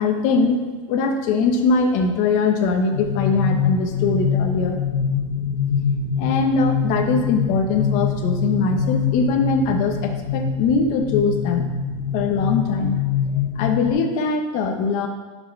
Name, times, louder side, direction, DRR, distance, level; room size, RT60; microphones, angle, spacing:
voice 1, 0.0-4.8 6.2-11.7 12.1-13.0 13.5-15.1, left 4 dB, 45° left, 4 dB, 1.2 m, -21 dB
sound 1, 2.9-13.9, left 6 dB, 85° left, 1.8 m, -24 dB
11.0 x 5.6 x 4.1 m, 1.3 s
supercardioid pair, 145°, 17 cm